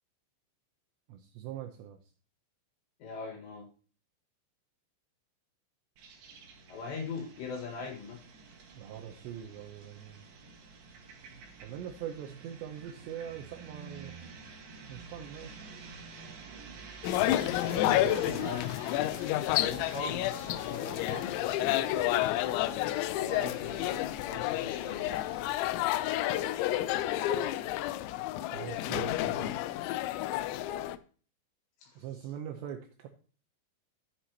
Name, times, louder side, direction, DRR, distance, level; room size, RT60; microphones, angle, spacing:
voice 1, 1.1-2.0 8.8-10.3 11.6-14.1 14.9-15.6 17.7-18.6 28.5-29.6 32.0-33.1, right 10 dB, 90° right, 5 dB, 2.6 m, -42 dB
voice 2, 3.0-3.7 6.7-8.2 17.6-18.7 19.6-21.3 23.2-25.0 31.8-32.0, left 4 dB, 65° left, 2 dB, 3.6 m, -40 dB
sound 1, 6.0-25.6, right 4 dB, 60° right, 2.6 m, -50 dB
sound 2, 17.0-31.0, left 14 dB, 85° left, 2.6 m, -30 dB
11.5 x 7.9 x 2.8 m, 0.40 s
omnidirectional pair, 5.7 m